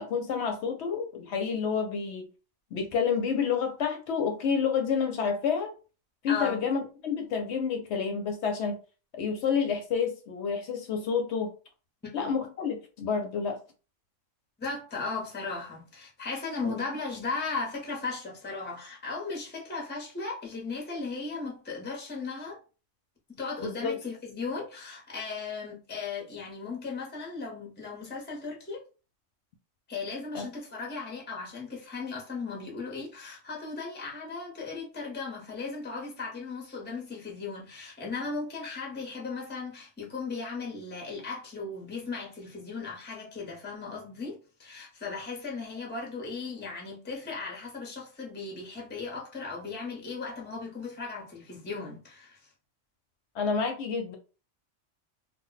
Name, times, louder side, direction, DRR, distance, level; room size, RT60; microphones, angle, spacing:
voice 1, 0.0-2.3 2.7-5.7 6.2-8.8 9.1-11.5 12.1-13.6 16.6-16.7 23.6-23.9 30.3-30.5 53.3-54.2, left 6 dB, 70° left, 0.8 m, -29 dB
voice 2, 6.3-6.6 12.0-12.4 14.6-22.6 23.4-28.8 29.9-52.5, left 4 dB, 10° left, 0.6 m, -37 dB
2.1 x 2.1 x 3.8 m
omnidirectional pair, 1.3 m